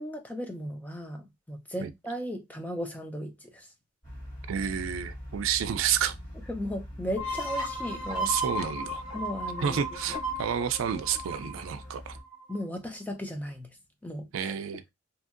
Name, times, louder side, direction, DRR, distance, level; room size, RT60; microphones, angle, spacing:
voice 1, 0.0-3.7 6.5-8.4 9.1-10.2 12.5-13.8 14.0-14.5, equal, 10° left, 0.4 m, -36 dB
sound 1, 4.0-12.2, equal, 35° left, 1.6 m, -44 dB
voice 2, 4.5-6.2 8.3-9.0 9.6-12.2 14.3-14.8, right 8 dB, 90° right, 0.4 m, -30 dB
sound 2, 7.2-12.6, right 1 dB, 90° left, 1.2 m, -35 dB
2.8 x 2.6 x 2.4 m
head